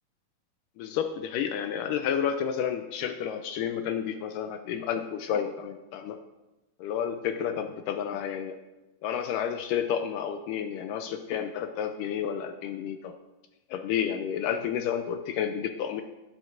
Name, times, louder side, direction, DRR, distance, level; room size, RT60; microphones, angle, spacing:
voice 1, 0.8-6.2 6.8-8.6 9.0-13.1 13.7-16.0, left 8 dB, 80° left, 7 dB, 1.9 m, -30 dB
12.0 x 10.5 x 2.5 m, 1.0 s
omnidirectional pair, 4.2 m